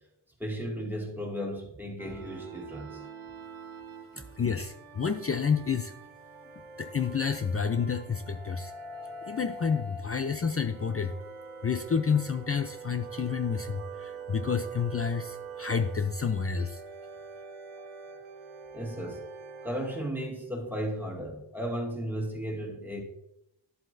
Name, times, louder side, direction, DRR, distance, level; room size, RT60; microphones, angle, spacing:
voice 1, 0.4-3.1 18.7-19.3 19.6-23.0, equal, 5° right, -1 dB, 2.1 m, -35 dB
sound 1, 2.0-20.1, right 4 dB, 75° right, 1.1 m, -44 dB
voice 2, 4.2-5.9 6.8-8.7 9.3-11.1 11.6-16.8, left 6 dB, 30° left, 8 dB, 0.5 m, -29 dB
11.0 x 7.7 x 2.6 m, 0.83 s
wide cardioid pair, 85°, 48 cm